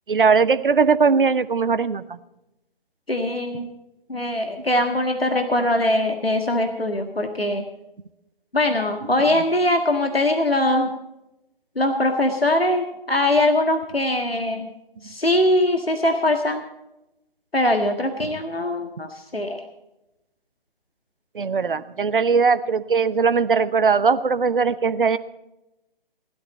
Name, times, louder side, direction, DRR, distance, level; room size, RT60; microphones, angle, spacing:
voice 1, 0.1-2.2 9.0-9.1 18.2-18.3 21.3-25.2, right 5 dB, 65° right, 14 dB, 0.9 m, -20 dB
voice 2, 3.1-3.7 4.1-7.6 8.5-10.9 11.7-14.7 15.0-16.6 17.5-19.6, left 1 dB, 90° left, 5 dB, 1.7 m, -22 dB
17.0 x 12.0 x 4.2 m, 0.91 s
figure-of-eight pair, 145°, 29 cm